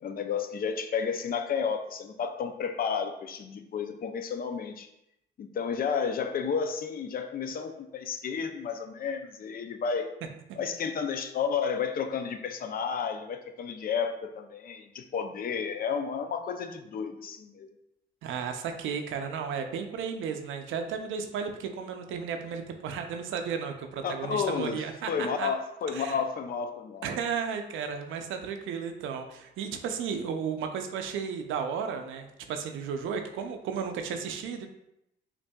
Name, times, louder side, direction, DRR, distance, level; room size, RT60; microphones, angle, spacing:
voice 1, 0.0-4.9 5.4-10.1 10.6-17.7 24.0-27.1, left 6 dB, 50° left, 7 dB, 0.5 m, -32 dB
voice 2, 18.2-25.1 25.4-25.5 25.9-26.1 27.0-34.7, right 6 dB, 85° right, 6 dB, 0.5 m, -34 dB
5.3 x 2.6 x 2.3 m, 0.82 s
cardioid pair, 90°, 20 cm